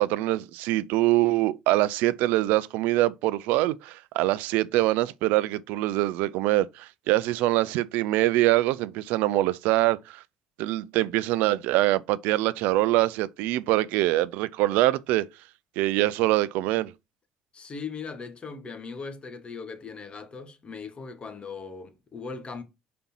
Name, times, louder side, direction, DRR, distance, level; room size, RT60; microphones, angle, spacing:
voice 1, 0.0-10.2 10.6-15.3 15.8-16.9, right 17 dB, 70° right, 0.4 m, -24 dB
voice 2, 17.5-22.6, left 5 dB, 35° left, 1.5 m, -39 dB
5.2 x 4.2 x 4.4 m
hypercardioid pair, 60°, 3 cm